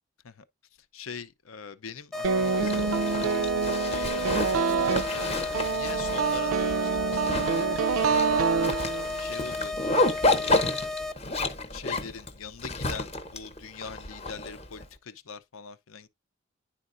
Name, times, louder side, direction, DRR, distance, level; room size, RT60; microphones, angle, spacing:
voice 1, 0.9-4.5 5.1-7.4 9.2-10.7 11.7-16.1, left 5 dB, 80° left, 0.7 m, -43 dB
sound 1, 2.1-11.1, left 3 dB, ahead, 0.4 m, -34 dB
sound 2, 2.2-9.3, right 5 dB, 90° right, 0.4 m, -27 dB
Zipper (clothing), 2.4-14.8, left 2 dB, 30° left, 0.8 m, -31 dB
10.0 x 4.2 x 2.5 m
head